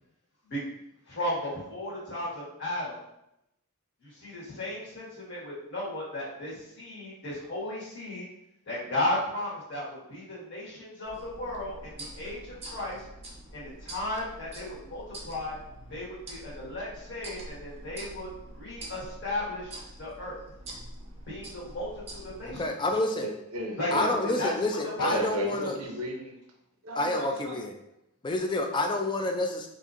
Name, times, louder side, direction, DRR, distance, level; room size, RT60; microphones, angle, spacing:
voice 1, 1.1-3.0 4.0-8.3 8.7-13.0 13.5-15.5 15.9-20.4 21.3-22.7 23.8-24.1 24.4-24.5 25.0-25.5, left 1 dB, 50° left, -7 dB, 1.4 m, -35 dB
sound 1, 11.0-22.7, right 1 dB, 30° right, 0.6 m, -45 dB
voice 2, 22.5-23.3 23.9-25.8 27.0-27.7 28.2-29.7, left 2 dB, 20° left, 3 dB, 0.3 m, -28 dB
voice 3, 23.2-24.4 25.0-26.3 26.8-27.6, right 2 dB, 75° right, 0 dB, 0.6 m, -34 dB
4.2 x 2.6 x 2.4 m, 0.84 s
head